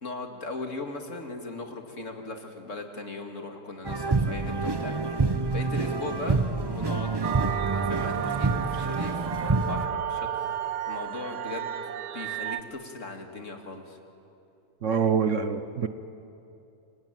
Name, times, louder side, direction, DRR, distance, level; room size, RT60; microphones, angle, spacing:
voice 1, 0.0-7.2 7.7-10.6 10.8-11.8 12.1-14.0, left 3 dB, 50° left, 4 dB, 2.5 m, -39 dB
sound 1, 3.8-9.9, right 3 dB, 25° right, 0.6 m, -27 dB
sound 2, 7.2-12.6, right 10 dB, 85° right, 1.5 m, -32 dB
voice 2, 14.8-15.9, right 6 dB, 55° right, 10 dB, 1.1 m, -25 dB
27.5 x 23.5 x 9.1 m, 2.8 s
omnidirectional pair, 1.7 m